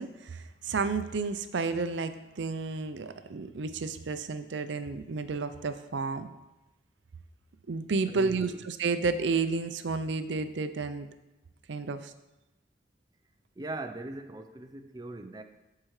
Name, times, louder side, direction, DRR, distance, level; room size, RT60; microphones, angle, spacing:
voice 1, 0.0-6.3 7.7-11.1 11.7-12.1, right 4 dB, 70° right, 10 dB, 0.5 m, -31 dB
voice 2, 8.1-8.6 13.6-15.4, right 2 dB, 20° right, 7 dB, 0.4 m, -40 dB
14.0 x 4.7 x 3.2 m, 0.99 s
head